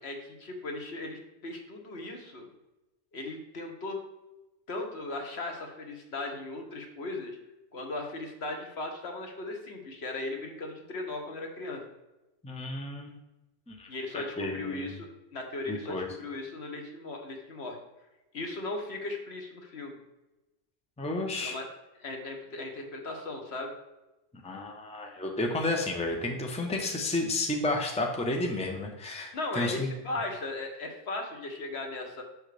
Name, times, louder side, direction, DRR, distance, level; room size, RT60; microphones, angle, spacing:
voice 1, 0.0-2.5 3.1-4.0 4.7-7.4 7.7-11.8 13.9-17.8 18.3-20.0 21.3-21.7 22.0-23.7 29.3-32.2, left 2 dB, 65° left, 3 dB, 1.3 m, -37 dB
voice 2, 12.4-13.1 13.7-13.9 14.1-15.0 15.7-16.1 21.0-21.6 24.4-29.9, left 2 dB, 5° left, 1 dB, 0.8 m, -32 dB
6.4 x 6.3 x 3.3 m, 0.99 s
omnidirectional pair, 1.2 m